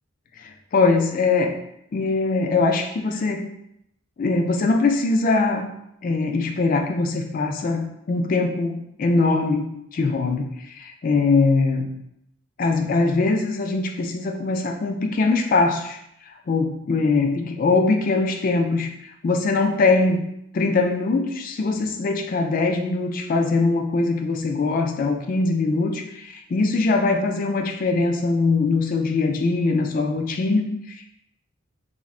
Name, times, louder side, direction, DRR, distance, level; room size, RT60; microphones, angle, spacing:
voice 1, 0.4-1.5 1.9-3.5 4.2-5.7 6.0-12.0 12.6-16.0 16.5-20.2 20.5-31.1, left 3 dB, 45° left, 3 dB, 0.3 m, -22 dB
2.4 x 2.1 x 3.6 m, 0.77 s
head